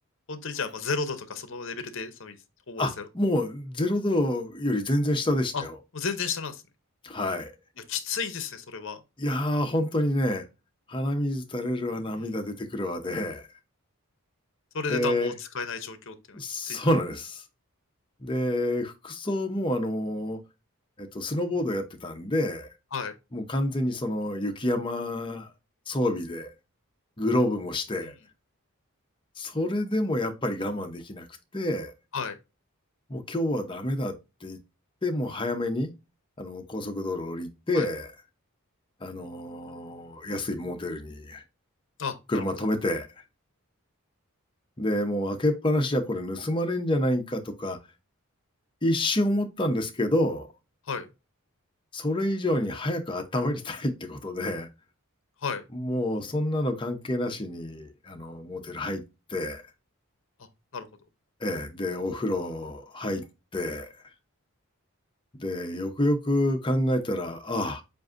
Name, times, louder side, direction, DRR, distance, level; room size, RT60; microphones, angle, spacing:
voice 1, 0.3-2.4 2.7-3.1 5.5-5.6 5.9-6.6 7.8-9.0 14.7-16.8 22.9-23.1 28.0-28.1 32.1-32.4 37.7-37.9 42.0-42.4 50.9-51.1 55.4-55.6 60.7-60.9, left 5 dB, 55° left, 0.7 m, -33 dB
voice 2, 2.8-5.8 7.0-7.5 9.2-10.4 10.9-13.5 14.9-15.3 16.3-17.4 18.2-20.4 21.0-22.7 23.3-25.5 25.9-26.5 27.2-28.1 29.4-31.3 31.5-31.9 33.1-34.1 34.4-34.6 35.0-35.9 36.4-38.1 39.0-41.4 42.3-43.1 44.8-47.8 48.8-50.5 51.9-54.7 55.7-59.0 59.3-59.6 61.4-63.2 63.5-63.9 65.4-67.8, left 1 dB, 20° left, 0.6 m, -28 dB
7.6 x 2.6 x 2.4 m
head